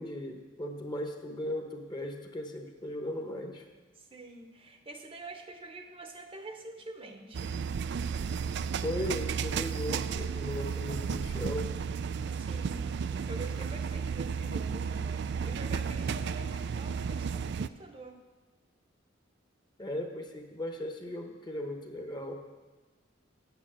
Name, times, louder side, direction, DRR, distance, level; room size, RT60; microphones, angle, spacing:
voice 1, 0.0-3.7 8.8-11.7 19.8-22.3, left 1 dB, 20° left, 4 dB, 1.0 m, -37 dB
voice 2, 4.0-7.5 12.3-18.2, right 2 dB, 30° right, 5 dB, 0.8 m, -46 dB
sound 1, 7.3-17.7, right 6 dB, 60° right, 0.4 m, -33 dB
9.1 x 8.2 x 7.4 m, 1.3 s
head